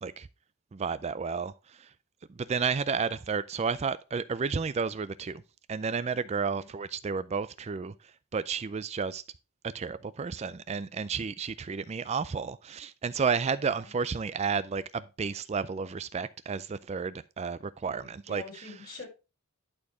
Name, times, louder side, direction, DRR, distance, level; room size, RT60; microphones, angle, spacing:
voice 1, 0.7-1.9 2.3-5.4 5.7-9.2 9.6-18.4, right 5 dB, 30° right, 0.3 m, -32 dB
voice 2, 13.6-13.9 17.8-19.1, left 3 dB, 45° left, 4.7 m, -46 dB
11.5 x 4.4 x 4.8 m
head